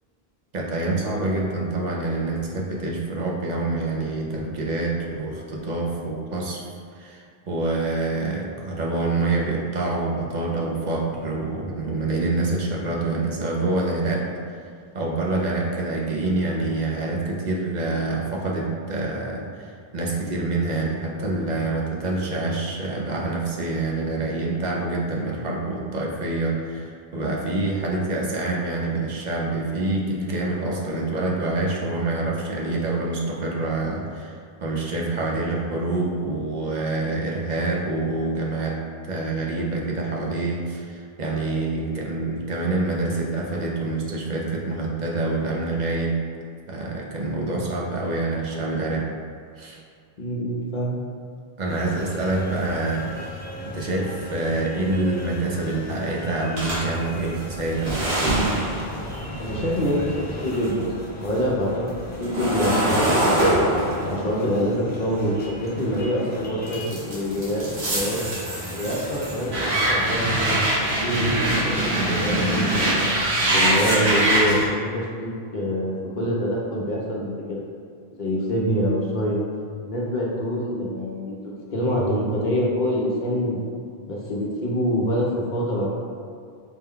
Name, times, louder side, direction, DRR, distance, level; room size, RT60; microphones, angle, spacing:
voice 1, 0.5-6.6 7.0-14.3 14.9-34.3 34.6-38.8 39.0-46.1 46.7-49.1 49.6-49.8 51.6-58.6, right 2 dB, 55° right, -2 dB, 0.6 m, -26 dB
voice 2, 47.2-47.5 50.2-51.0 59.4-60.9 61.2-61.9 62.2-63.6 64.0-68.2 68.7-73.1 73.5-77.6 78.2-79.4 79.8-83.7 84.1-85.9, equal, 55° left, -3 dB, 0.8 m, -26 dB
sound 1, 51.7-70.2, left 1 dB, 15° left, 0.4 m, -37 dB
sound 2, 56.6-60.8 61.2-66.1 66.7-74.7, right 1 dB, 85° right, 1.3 m, -24 dB
4.4 x 2.2 x 3.6 m, 2.2 s
omnidirectional pair, 1.0 m